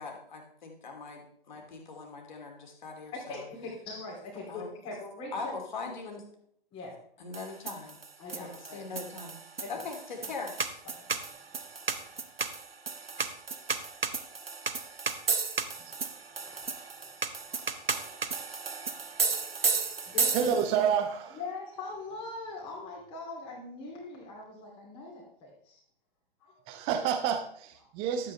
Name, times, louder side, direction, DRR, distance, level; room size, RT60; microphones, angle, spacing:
voice 1, 0.0-3.4 4.5-4.7 5.3-6.2 7.2-8.0 8.3-9.4 9.7-10.5 12.4-12.5, left 4 dB, 50° left, 2 dB, 2.6 m, -41 dB
voice 2, 3.3-5.3 6.7-7.0 8.2-8.9 9.6-9.7 10.2-10.3 10.8-11.1 11.9-12.0 13.6-13.7 16.1-16.6 17.0-17.2 17.4-18.9 20.0-20.5 21.3-25.8 26.4-26.8, left 3 dB, 20° left, -3 dB, 2.7 m, -43 dB
sound 1, 7.3-20.9, right 4 dB, 80° right, 1.0 m, -33 dB
voice 3, 20.3-21.4 26.7-28.3, right 8 dB, 20° right, 8 dB, 0.8 m, -29 dB
12.0 x 8.4 x 3.3 m, 0.65 s
figure-of-eight pair, 125°, 29 cm